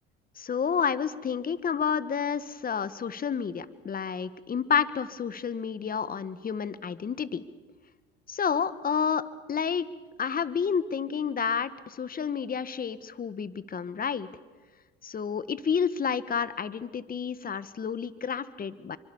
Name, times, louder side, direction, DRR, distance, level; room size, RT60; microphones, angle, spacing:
voice 1, 0.4-7.4 8.3-9.9 10.2-14.3 15.0-19.0, left 7 dB, 30° left, 14 dB, 1.5 m, -30 dB
28.0 x 24.5 x 7.2 m, 1.3 s
hypercardioid pair, 75°, 29 cm